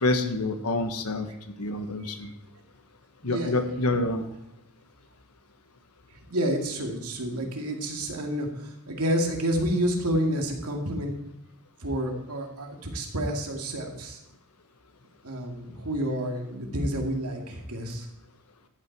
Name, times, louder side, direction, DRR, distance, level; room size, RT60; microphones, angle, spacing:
voice 1, 0.0-1.3 1.6-2.3 3.2-4.3, left 2 dB, 80° left, 7 dB, 1.3 m, -27 dB
voice 2, 3.2-3.6 6.3-11.1 11.8-14.2 15.2-18.1, equal, 90° right, 2 dB, 2.3 m, -29 dB
13.5 x 8.7 x 4.7 m, 0.85 s
head